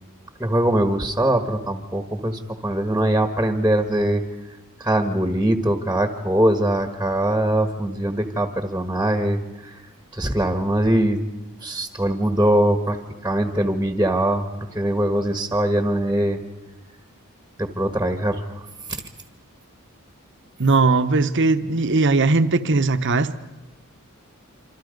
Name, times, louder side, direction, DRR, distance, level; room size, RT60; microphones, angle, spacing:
voice 1, 0.4-4.2 4.8-9.8 10.1-11.2 11.6-14.4 14.7-16.4 17.6-19.0, right 1 dB, 5° right, 6 dB, 1.5 m, -22 dB
voice 2, 20.6-23.3, right 3 dB, 55° right, 10 dB, 1.1 m, -19 dB
26.5 x 26.0 x 5.3 m, 1.1 s
head